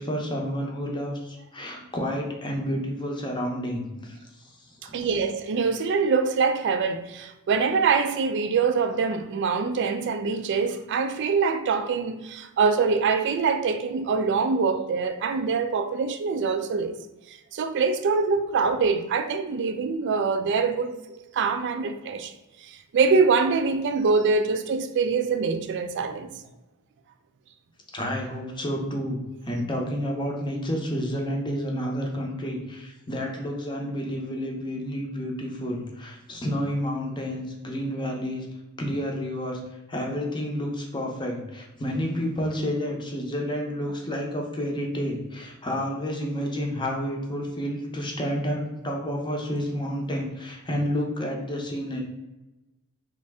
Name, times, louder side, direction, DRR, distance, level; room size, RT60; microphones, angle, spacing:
voice 1, 0.0-5.1 27.9-29.2 29.4-38.5 38.8-39.6 39.9-52.0, equal, 20° left, 0.7 m, -30 dB
voice 2, 4.9-16.9 17.3-21.0 21.3-22.3 22.6-26.3, right 5 dB, 55° right, 0.3 m, -24 dB
3.2 x 2.6 x 3.4 m
head